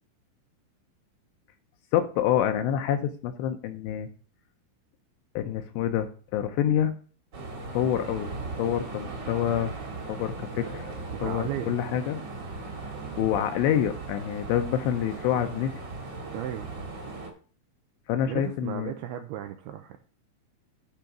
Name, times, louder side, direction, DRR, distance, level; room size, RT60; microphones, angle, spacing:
voice 1, 1.9-4.1 5.4-7.0 7.7-8.3 8.6-9.7 10.1-10.9 11.2-12.2 12.8-12.9 13.2-15.7 18.1-18.9, left 10 dB, 80° left, 7 dB, 2.8 m, -27 dB
sound 1, 7.3-17.3, right 3 dB, 45° right, 1.4 m, -38 dB
voice 2, 11.2-11.8 16.3-16.7 18.3-20.0, right 11 dB, 90° right, 7 dB, 2.3 m, -35 dB
12.0 x 4.0 x 5.9 m, 0.40 s
omnidirectional pair, 5.3 m